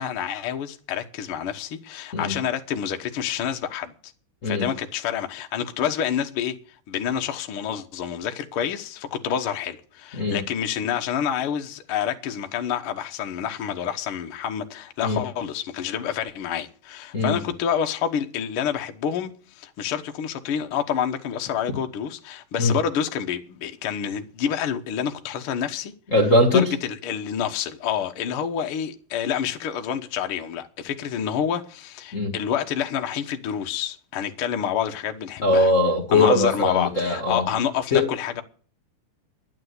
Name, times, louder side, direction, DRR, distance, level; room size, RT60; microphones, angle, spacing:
voice 1, 0.0-3.9 4.4-6.5 6.9-25.9 26.5-35.7 36.1-38.4, left 8 dB, 75° left, 1.2 m, -28 dB
voice 2, 26.1-26.7 32.1-32.3 35.4-37.5 37.9-38.1, left 2 dB, 50° left, 0.9 m, -20 dB
11.5 x 8.9 x 8.0 m
omnidirectional pair, 4.1 m